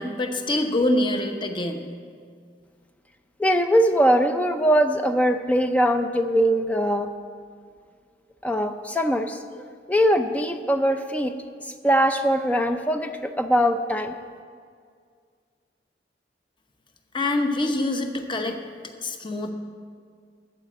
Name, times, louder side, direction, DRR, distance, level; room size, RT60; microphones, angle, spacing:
voice 1, 0.0-1.8 17.1-18.6 19.0-19.5, left 1 dB, 30° left, 5 dB, 0.9 m, -25 dB
voice 2, 3.4-7.1 8.4-9.4 9.9-11.3 11.8-14.1, equal, 10° left, 7 dB, 0.4 m, -21 dB
13.5 x 5.0 x 8.5 m, 2.1 s
head